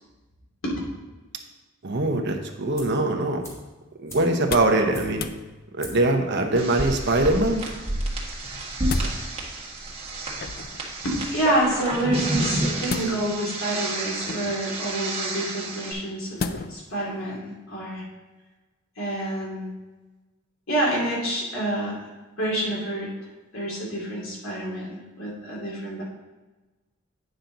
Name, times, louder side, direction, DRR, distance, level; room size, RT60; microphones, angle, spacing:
voice 1, 1.8-3.5 4.0-5.3 5.7-7.7, right 2 dB, 60° right, 4 dB, 0.9 m, -22 dB
sound 1, 2.7-3.1 3.4-5.4 5.8-6.2 6.4-6.5, equal, 15° left, 1.9 m, -42 dB
sound 2, 4.3-4.8 5.1-5.4 6.5-7.0 8.4-9.2 10.4-10.8 12.9-13.5 14.2-14.7 16.4-16.9 17.3-17.4, left 4 dB, 50° left, 0.5 m, -34 dB
sound 3, 6.6-15.9, right 1 dB, 30° right, 1.5 m, -30 dB
voice 2, 11.0-16.4 16.7-18.0 19.0-19.7 20.7-22.1 22.4-23.1 23.5-26.0, right 1 dB, 75° left, -4 dB, 2.7 m, -28 dB
9.3 x 5.8 x 3.9 m, 1.2 s
head